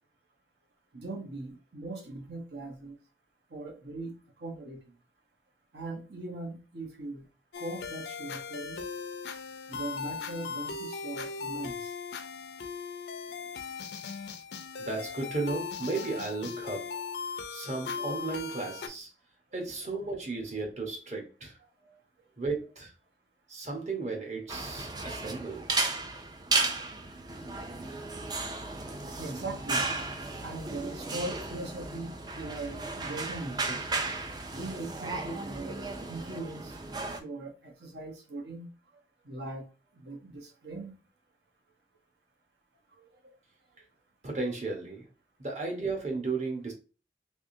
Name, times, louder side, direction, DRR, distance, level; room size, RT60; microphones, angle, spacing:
voice 1, 0.9-3.0 3.5-4.8 5.7-7.3 7.6-8.8 9.7-11.9 19.5-19.6 21.8-22.0 28.0-28.2 29.0-30.1 30.4-33.8 34.3-35.8 36.1-38.7 39.2-39.7 39.9-41.0 42.9-43.4, right 2 dB, 70° right, 1.0 m, -40 dB
sound 1, 7.5-18.9, left 5 dB, 75° left, 0.5 m, -38 dB
voice 2, 14.8-16.9 17.5-19.1 19.5-21.6 22.4-22.9 23.5-25.7 44.2-45.1 45.4-46.7, right 3 dB, 40° right, 1.0 m, -34 dB
sound 2, 24.5-37.2, right 3 dB, 25° right, 0.4 m, -34 dB
3.5 x 3.3 x 2.6 m
head